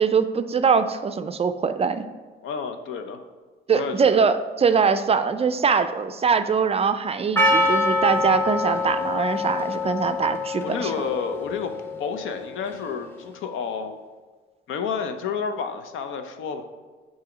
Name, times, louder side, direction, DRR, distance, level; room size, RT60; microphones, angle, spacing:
voice 1, 0.0-2.1 3.7-10.9, right 5 dB, 30° right, 10 dB, 0.4 m, -22 dB
voice 2, 2.4-3.2 3.7-4.3 9.9-10.1 10.6-11.7 12.0-14.0 14.7-16.6, left 6 dB, 80° left, 7 dB, 0.6 m, -30 dB
Percussion, 7.4-12.3, left 2 dB, 10° left, 1.0 m, -25 dB
7.5 x 2.8 x 4.9 m, 1.4 s
cardioid pair, 90°, 20 cm